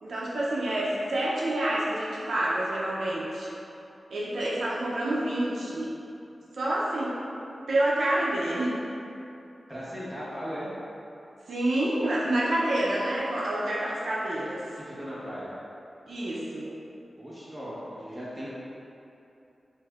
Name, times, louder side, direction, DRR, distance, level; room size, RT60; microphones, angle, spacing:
voice 1, 0.0-3.5 4.1-5.9 6.6-7.2 7.7-8.8 11.5-14.6 16.1-16.7, right 1 dB, 80° right, -6 dB, 0.5 m, -28 dB
voice 2, 9.7-10.7 14.9-15.5 17.1-18.5, equal, 5° right, -10 dB, 1.3 m, -37 dB
5.2 x 2.6 x 2.4 m, 2.8 s
cardioid pair, 60°, 0 cm